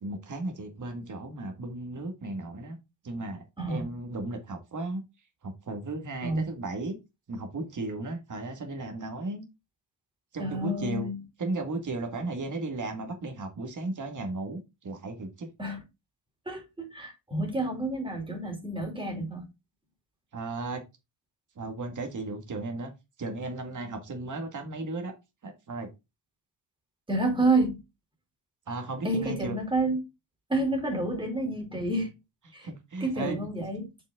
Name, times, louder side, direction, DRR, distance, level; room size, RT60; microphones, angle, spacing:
voice 1, 0.0-2.8 3.0-5.0 5.4-7.0 7.3-9.5 10.3-11.1 11.4-15.5 20.3-20.8 21.6-22.9 23.2-25.1 25.4-25.9 28.7-29.6 32.6-33.4, right 2 dB, 40° right, 1.9 m, -35 dB
voice 2, 3.6-3.9 6.2-6.5 10.4-11.2 15.6-15.8 16.5-19.4 27.1-27.8 29.0-30.0 30.5-32.1 32.5-32.7 33.0-33.9, right 2 dB, 10° right, 2.8 m, -29 dB
7.1 x 5.5 x 3.7 m
wide cardioid pair, 130°, 45 cm